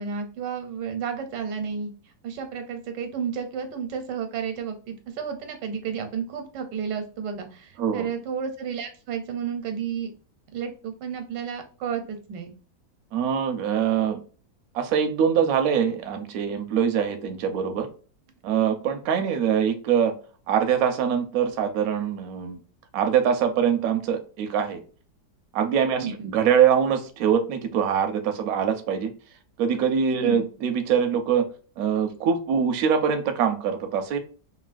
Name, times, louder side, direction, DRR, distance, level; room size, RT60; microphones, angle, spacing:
voice 1, 0.0-1.9 2.2-10.1 10.5-12.5 26.0-26.3 30.2-30.4, right 7 dB, 85° right, 6 dB, 1.3 m, -32 dB
voice 2, 13.1-14.2 14.7-17.9 18.4-20.1 20.5-22.6 22.9-24.8 25.5-29.1 29.6-31.4 31.8-34.2, right 8 dB, 70° right, 7 dB, 0.9 m, -23 dB
3.0 x 2.6 x 2.4 m, 0.39 s
omnidirectional pair, 1.8 m